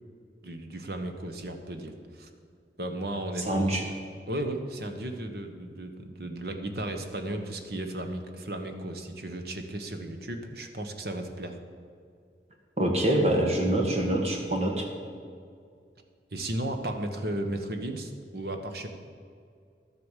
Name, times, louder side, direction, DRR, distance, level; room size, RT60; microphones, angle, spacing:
voice 1, 0.4-2.3 2.8-3.8 4.3-11.6 16.3-18.9, right 1 dB, 60° right, 6 dB, 1.2 m, -35 dB
voice 2, 3.5-3.8 12.8-14.9, right 1 dB, 35° right, 1 dB, 1.8 m, -25 dB
12.0 x 8.1 x 7.4 m, 2.2 s
head